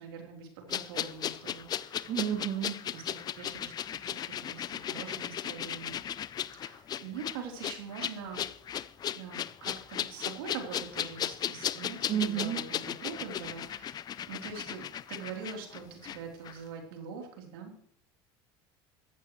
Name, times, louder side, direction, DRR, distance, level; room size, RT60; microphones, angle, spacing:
voice 1, 0.0-2.1 2.9-3.7 4.0-6.0 6.5-8.4 9.1-17.7, right 6 dB, 90° right, 1 dB, 3.6 m, -43 dB
sound 1, 0.7-16.2 16.4-16.6, left 10 dB, 35° left, 0.6 m, -36 dB
voice 2, 2.1-2.9 12.1-12.6, right 10 dB, 55° right, 2 dB, 2.4 m, -31 dB
14.5 x 14.5 x 3.2 m, 0.64 s
supercardioid pair, 115°, 12 cm